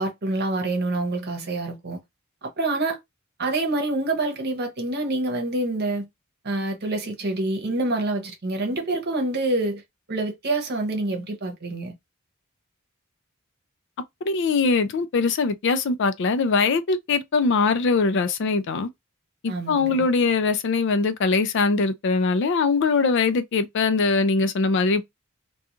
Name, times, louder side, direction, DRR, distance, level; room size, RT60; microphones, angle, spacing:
voice 1, 0.0-2.0 2.4-3.0 3.4-6.1 6.4-9.8 10.1-12.0 19.5-20.1, right 2 dB, 50° right, 0.8 m, -26 dB
voice 2, 14.3-18.9 19.4-25.0, left 4 dB, 60° left, 0.4 m, -22 dB
2.4 x 2.3 x 2.9 m
head